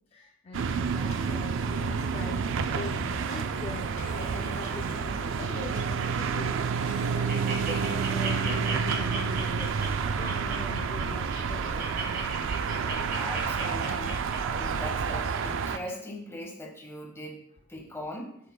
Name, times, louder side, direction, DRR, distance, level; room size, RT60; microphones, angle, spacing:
voice 1, 0.1-12.1, left 2 dB, 30° left, 2 dB, 0.4 m, -42 dB
sound 1, 0.5-15.8, right 5 dB, 65° right, 0.4 m, -29 dB
sound 2, 0.6-12.5, left 2 dB, 70° left, 1.1 m, -52 dB
Laughter, 4.0-5.1 5.4-5.7 6.2-6.3 6.6-6.7 7.0-15.4 15.9-16.0, right 4 dB, 45° right, 2.3 m, -37 dB
voice 2, 13.0-18.4, equal, 15° left, 0 dB, 1.3 m, -40 dB
7.6 x 7.0 x 2.3 m, 0.71 s
head